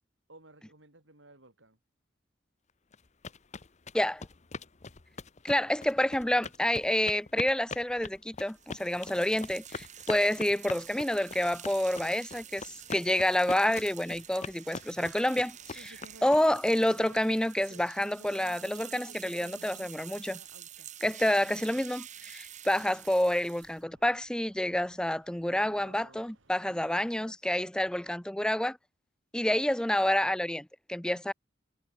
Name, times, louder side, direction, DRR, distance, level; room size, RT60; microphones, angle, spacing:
voice 1, 0.3-1.8 16.8-17.2 25.4-26.3 26.6-27.4, right 2 dB, 70° right, 5.7 m, -56 dB
sound 1, 2.9-16.7, left 4 dB, 35° left, 0.9 m, -42 dB
voice 2, 5.4-20.4 21.0-28.8 29.3-31.3, left 1 dB, 5° left, 0.4 m, -28 dB
sound 2, 8.5-23.8, right 10 dB, 40° right, 1.7 m, -48 dB
sound 3, 15.2-26.6, right 3 dB, 90° right, 2.1 m, -57 dB
head